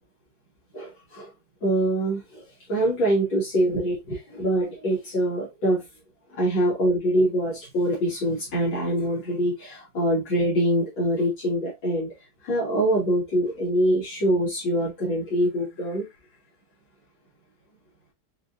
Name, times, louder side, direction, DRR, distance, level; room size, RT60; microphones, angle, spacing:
voice 1, 0.7-1.3 1.6-2.4 2.7-5.8 6.3-12.1 12.4-16.1, right 1 dB, 70° left, 2.3 m, -24 dB
5.9 x 2.6 x 2.3 m
omnidirectional pair, 2.2 m